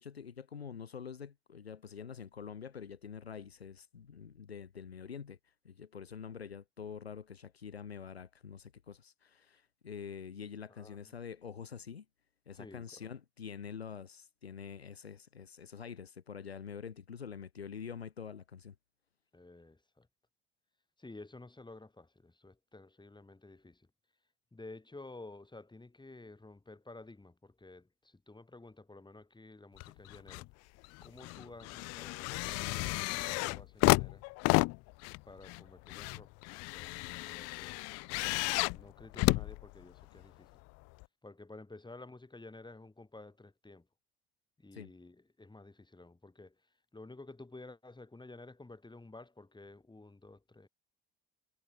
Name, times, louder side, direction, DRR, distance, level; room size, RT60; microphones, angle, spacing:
voice 1, 0.0-5.4 5.7-12.1 12.5-18.7 44.7-44.9, left 7 dB, 90° left, 1.7 m, -46 dB
voice 2, 10.7-11.1 12.5-13.1 19.3-20.1 21.0-23.9 24.5-30.5 31.0-34.2 35.2-36.3 36.7-37.8 38.7-40.5 41.2-43.9 44.6-50.7, left 2 dB, 15° left, 6.6 m, -52 dB
sound 1, 29.8-30.5 30.8-40.2 41.0-41.1, left 26 dB, 55° left, 0.4 m, -32 dB
figure-of-eight pair, 55°, 30 cm